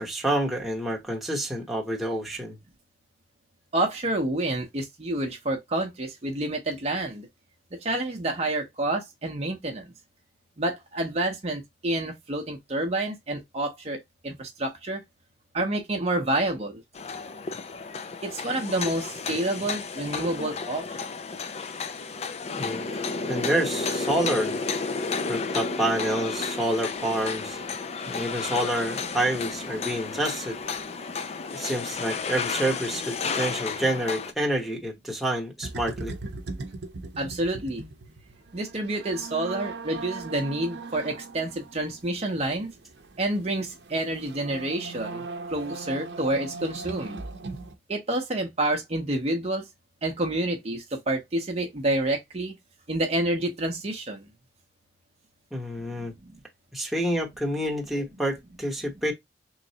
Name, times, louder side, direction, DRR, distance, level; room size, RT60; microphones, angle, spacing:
voice 1, 0.0-2.6 22.6-24.6 25.3-27.6 28.1-30.6 31.5-36.1 55.5-56.1 56.7-59.1, right 1 dB, ahead, 0.9 m, -28 dB
voice 2, 3.7-7.3 7.7-9.9 10.6-15.0 15.5-16.8 18.2-21.1 37.2-37.8 38.5-42.7 43.2-47.2 47.9-49.6 50.0-52.6 52.9-54.3 56.0-56.4, right 1 dB, 35° right, 0.7 m, -28 dB
sound 1, 16.9-34.3, left 4 dB, 35° left, 0.4 m, -32 dB
sound 2, 35.6-47.7, right 3 dB, 75° right, 0.7 m, -39 dB
3.8 x 3.2 x 2.7 m
head